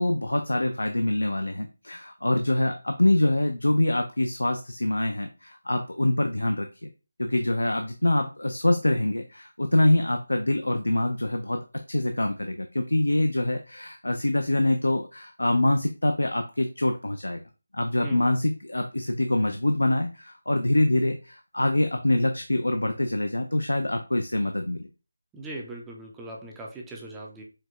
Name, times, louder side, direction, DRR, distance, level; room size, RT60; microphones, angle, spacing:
voice 1, 0.0-6.9 7.2-17.4 17.7-24.9, left 1 dB, 85° left, 6 dB, 0.3 m, -25 dB
voice 2, 25.3-27.4, right 2 dB, 5° right, -1 dB, 0.4 m, -39 dB
4.5 x 2.1 x 2.3 m, 0.32 s
figure-of-eight pair, 165°, 0 cm